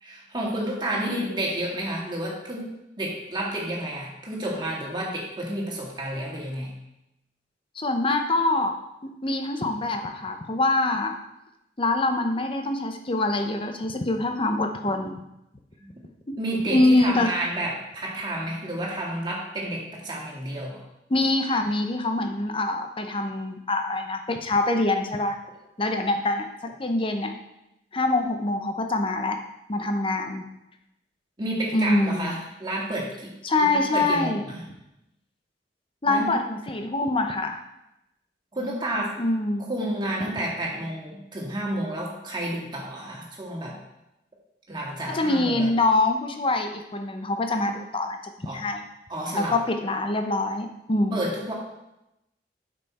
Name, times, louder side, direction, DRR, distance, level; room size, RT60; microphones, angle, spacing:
voice 1, 0.0-6.7 15.8-15.9 16.4-20.8 31.4-34.6 36.1-36.3 38.5-39.2 39.7-43.8 44.7-45.7 48.5-48.6 49.1-49.5 51.1-51.5, right 1 dB, 25° right, -3 dB, 1.9 m, -30 dB
voice 2, 7.8-11.2 11.8-15.2 16.3-16.4 16.7-17.3 21.1-25.4 25.8-27.3 27.9-29.4 29.7-30.5 31.7-32.4 33.4-34.5 36.0-37.6 39.2-39.6 45.1-48.8 49.3-51.2, left 2 dB, 30° left, 5 dB, 0.7 m, -25 dB
8.3 x 5.5 x 4.2 m, 0.89 s
head